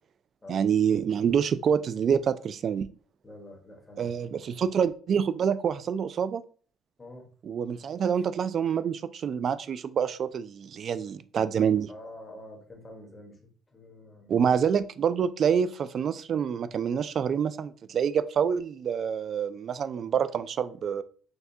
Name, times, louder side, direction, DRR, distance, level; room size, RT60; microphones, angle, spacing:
voice 1, 0.5-2.9 4.0-6.4 7.5-11.9 14.3-21.0, right 7 dB, 50° right, 14 dB, 0.3 m, -27 dB
voice 2, 3.2-4.6 7.0-7.3 8.1-8.3 11.9-14.7, left 1 dB, 20° left, 1 dB, 1.4 m, -48 dB
6.4 x 2.2 x 2.7 m, 0.42 s
cardioid pair, 115°, 0 cm